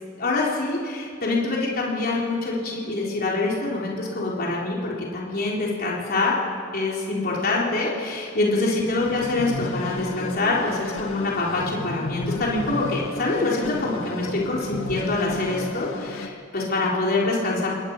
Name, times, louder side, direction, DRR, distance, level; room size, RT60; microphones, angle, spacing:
voice 1, 0.2-6.3 6.7-17.8, left 2 dB, 50° left, -4 dB, 4.0 m, -25 dB
sound 1, 9.0-16.3, left 2 dB, 75° left, 1.5 m, -33 dB
24.0 x 19.5 x 5.5 m, 2.5 s
head